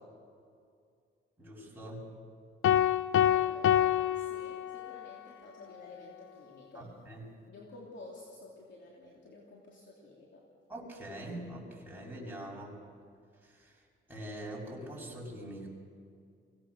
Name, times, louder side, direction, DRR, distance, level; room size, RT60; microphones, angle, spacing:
voice 1, 1.4-2.1 6.7-7.2 10.7-12.7 13.4-13.8 14.1-15.7, right 1 dB, 10° right, -4 dB, 7.1 m, -43 dB
sound 1, 2.6-5.1, left 11 dB, 80° left, 0.6 m, -27 dB
voice 2, 3.3-6.9 7.5-10.4, left 2 dB, 60° left, -3 dB, 3.2 m, -51 dB
23.5 x 18.0 x 6.4 m, 2.3 s
cardioid pair, 90°, 21 cm